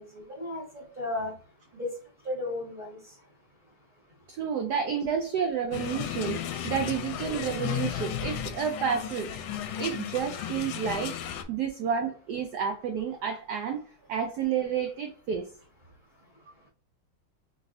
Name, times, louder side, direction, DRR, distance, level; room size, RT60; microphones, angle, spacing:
voice 1, 0.0-1.3 1.7-1.9 2.2-3.1, left 2 dB, 25° right, -8 dB, 1.8 m, -34 dB
voice 2, 4.3-9.3 9.8-15.5, right 7 dB, 85° right, 6 dB, 0.8 m, -30 dB
sound 1, 5.7-11.4, left 9 dB, 85° left, 1.4 m, -34 dB
4.0 x 3.4 x 2.6 m, 0.40 s
omnidirectional pair, 2.3 m